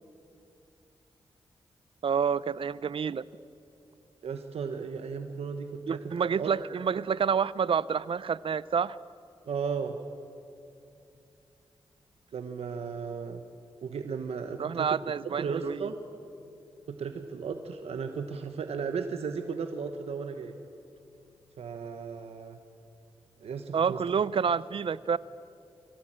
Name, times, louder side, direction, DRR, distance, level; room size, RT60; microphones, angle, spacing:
voice 1, 2.0-3.2 5.9-9.0 14.6-15.9 23.7-25.2, right 6 dB, 60° right, 19 dB, 0.6 m, -28 dB
voice 2, 4.2-6.5 9.5-10.0 12.3-13.4 13.8-14.9 15.2-16.0 16.9-20.5 21.6-22.6 23.4-24.0, right 5 dB, 85° right, 6 dB, 1.1 m, -35 dB
23.5 x 16.5 x 8.9 m, 2.6 s
cardioid pair, 60°, 10 cm